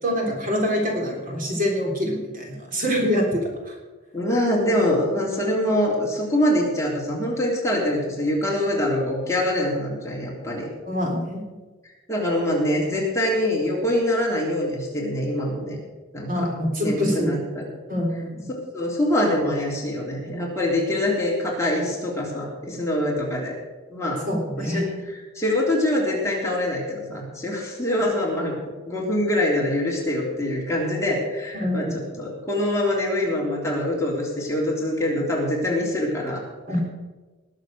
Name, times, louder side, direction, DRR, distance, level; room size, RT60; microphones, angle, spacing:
voice 1, 0.0-3.8 10.8-11.5 16.3-17.5 17.9-18.5 24.3-24.9 31.5-32.0 36.7-36.8, equal, 45° right, 0 dB, 3.5 m, -25 dB
voice 2, 4.1-10.7 12.1-15.8 16.1-16.5 16.8-17.7 18.7-23.5 23.9-24.2 24.6-28.5 28.9-31.9 32.2-36.4, left 1 dB, 15° left, -3 dB, 3.5 m, -24 dB
19.5 x 7.5 x 6.4 m, 1.2 s
head